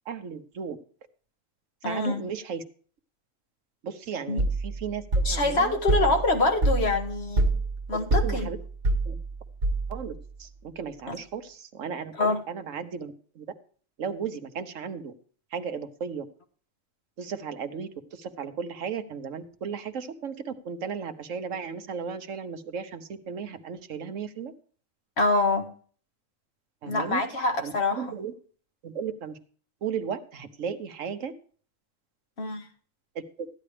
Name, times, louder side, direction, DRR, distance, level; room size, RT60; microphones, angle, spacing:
voice 1, 0.1-0.8 1.8-2.6 3.8-5.7 6.0-6.2 8.2-8.6 9.1-9.2 9.9-10.1 10.4-13.5 14.0-15.1 15.5-16.2 17.2-24.5 26.8-27.2 27.6-28.3 28.8-29.4 29.8-31.3 33.4-33.5, right 6 dB, 75° right, 9 dB, 1.4 m, -35 dB
voice 2, 1.8-2.2 4.3-4.4 5.2-7.5 7.9-8.5 11.1-11.2 12.2-12.4 25.2-25.7 26.8-28.2 32.4-32.7, left 2 dB, 55° left, 4 dB, 1.9 m, -25 dB
sound 1, 4.4-10.2, right 2 dB, 60° right, 1.6 m, -27 dB
14.0 x 9.8 x 3.3 m, 0.43 s
omnidirectional pair, 1.4 m